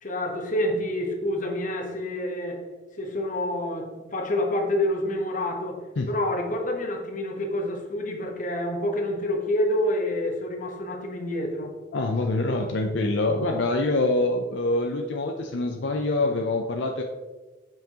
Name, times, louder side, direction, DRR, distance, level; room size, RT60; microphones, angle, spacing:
voice 1, 0.0-2.7 3.0-11.7, left 1 dB, 45° left, 3 dB, 1.0 m, -28 dB
voice 2, 11.9-17.0, left 2 dB, 70° left, 4 dB, 0.5 m, -25 dB
7.3 x 5.7 x 2.9 m, 1.2 s
head